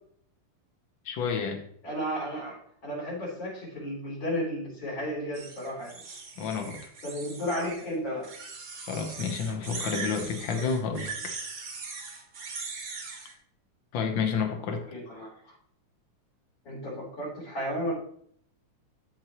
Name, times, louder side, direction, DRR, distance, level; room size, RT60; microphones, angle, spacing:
voice 1, 1.0-1.6 6.4-6.8 8.8-11.3 13.9-14.8, left 5 dB, 70° left, 5 dB, 1.1 m, -30 dB
voice 2, 1.8-6.0 7.0-8.3 14.6-15.6 16.6-17.9, equal, 35° left, -5 dB, 4.0 m, -33 dB
sound 1, 5.3-7.9 8.2-13.3, right 4 dB, 55° right, 0.9 m, -40 dB
13.5 x 4.6 x 3.0 m, 0.64 s
omnidirectional pair, 3.6 m